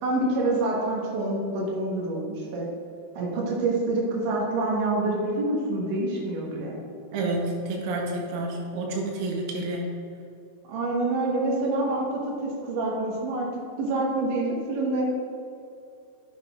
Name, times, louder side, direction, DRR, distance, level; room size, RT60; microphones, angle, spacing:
voice 1, 0.0-2.7 3.2-6.8 10.7-13.5 13.8-15.0, right 2 dB, 70° right, -3 dB, 3.5 m, -27 dB
voice 2, 7.1-9.9, right 2 dB, 90° right, -1 dB, 3.8 m, -29 dB
9.6 x 8.4 x 2.5 m, 2.5 s
omnidirectional pair, 5.8 m